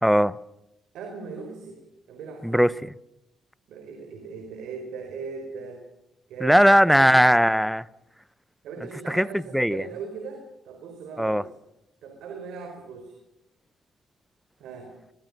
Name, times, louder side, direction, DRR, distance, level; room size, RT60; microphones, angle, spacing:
voice 1, 0.0-0.4 2.4-2.9 6.4-7.8 9.1-9.8 11.2-11.4, equal, ahead, 0.8 m, -19 dB
voice 2, 0.9-1.8 2.1-2.6 3.7-5.8 6.3-7.1 8.6-11.5 12.0-13.1 14.6-14.9, right 5 dB, 85° right, 4.9 m, -39 dB
22.5 x 21.5 x 6.7 m
cardioid pair, 90°, 0 cm